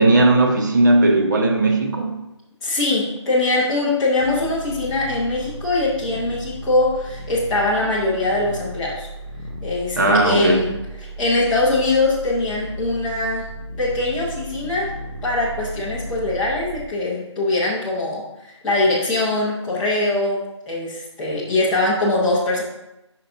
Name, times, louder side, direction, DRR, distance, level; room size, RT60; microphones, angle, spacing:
voice 1, 0.0-2.2 10.0-10.6, right 2 dB, 40° right, 2 dB, 1.0 m, -16 dB
voice 2, 2.6-9.1 9.6-13.5 13.8-14.9 15.2-22.6, left 2 dB, 5° left, -9 dB, 0.7 m, -22 dB
sound 1, 4.2-16.9, equal, 85° right, 1.1 m, -34 dB
9.4 x 5.8 x 2.6 m, 0.93 s
figure-of-eight pair, 170°, 16 cm